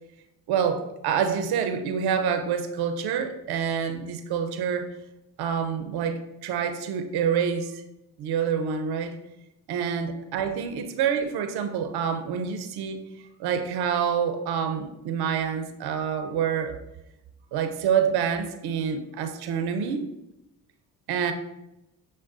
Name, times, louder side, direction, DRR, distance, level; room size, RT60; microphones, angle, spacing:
voice 1, 0.5-4.9 5.4-7.8 8.2-9.2 9.7-13.0 13.4-16.8 17.5-20.0 21.1-21.3, right 7 dB, 60° right, 7 dB, 0.6 m, -27 dB
6.0 x 2.2 x 2.4 m, 0.90 s
hypercardioid pair, 45°, 44 cm